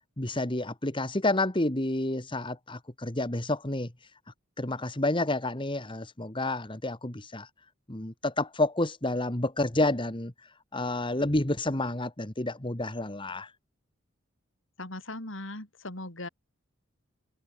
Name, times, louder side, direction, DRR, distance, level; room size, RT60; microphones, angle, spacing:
voice 1, 0.2-3.9 4.6-7.5 7.9-10.3 10.7-13.5, left 2 dB, 25° left, 1.7 m, -29 dB
voice 2, 14.8-16.3, left 2 dB, 70° left, 5.3 m, -39 dB
head